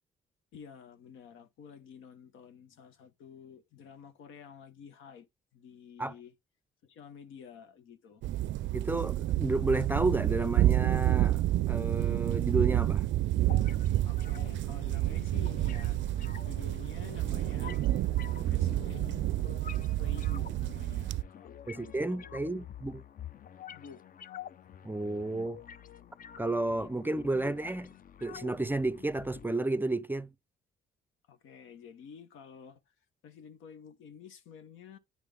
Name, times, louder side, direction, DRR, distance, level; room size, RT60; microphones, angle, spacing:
voice 1, 0.5-5.3 5.5-6.3 6.8-8.2 14.0-17.9 18.2-19.3 20.0-22.4 23.7-24.0 26.7-27.3 31.3-32.8 33.2-35.0, left 7 dB, 85° left, 1.2 m, -50 dB
sound 1, 8.2-21.2, right 14 dB, 70° right, 0.4 m, -29 dB
voice 2, 8.7-11.4 11.7-13.1 21.7-23.0 24.8-25.6 26.4-27.9 28.2-30.3, right 2 dB, 10° right, 0.4 m, -31 dB
sound 2, 13.4-29.4, left 9 dB, 45° left, 0.5 m, -49 dB
9.8 x 3.6 x 3.4 m
cardioid pair, 90°, 20 cm